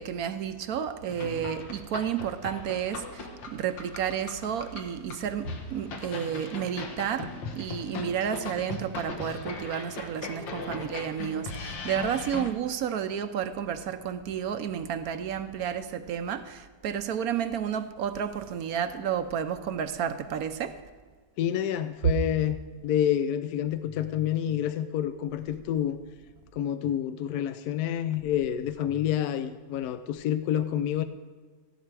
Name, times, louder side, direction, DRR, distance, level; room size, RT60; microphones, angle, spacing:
voice 1, 0.0-20.7, right 8 dB, 65° right, 10 dB, 1.0 m, -31 dB
sound 1, 1.1-12.5, left 3 dB, 90° left, 2.0 m, -39 dB
voice 2, 21.4-22.6 22.8-26.0 26.5-31.0, left 10 dB, 70° left, 10 dB, 0.9 m, -28 dB
14.0 x 11.0 x 4.7 m, 1.4 s
omnidirectional pair, 2.0 m